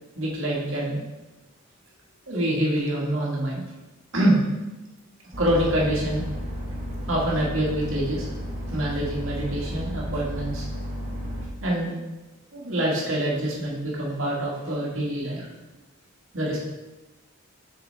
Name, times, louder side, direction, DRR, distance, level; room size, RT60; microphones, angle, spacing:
voice 1, 0.2-1.0 2.3-3.6 4.1-4.4 5.4-6.2 7.1-8.3 8.7-10.6 11.6-12.0 12.5-15.5 16.3-16.6, right 1 dB, 70° right, -4 dB, 2.0 m, -25 dB
sound 1, 5.3-11.5, equal, 35° right, 1.2 m, -33 dB
6.9 x 6.0 x 3.4 m, 1.1 s
head